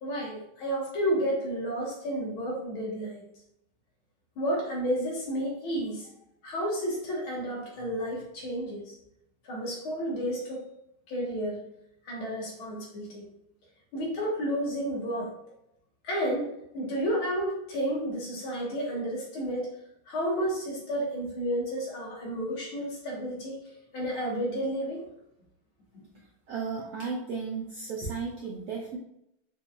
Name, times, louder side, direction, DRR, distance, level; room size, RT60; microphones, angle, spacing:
voice 1, 0.0-3.2 4.4-6.1 6.4-9.0 9.4-10.6 11.1-11.6 12.1-13.3 13.9-15.3 16.0-19.7 20.1-23.6 23.9-25.0, equal, 85° left, -3 dB, 2.0 m, -31 dB
voice 2, 26.5-29.0, right 5 dB, 80° right, -2 dB, 0.8 m, -34 dB
5.0 x 2.8 x 2.2 m, 0.79 s
omnidirectional pair, 2.2 m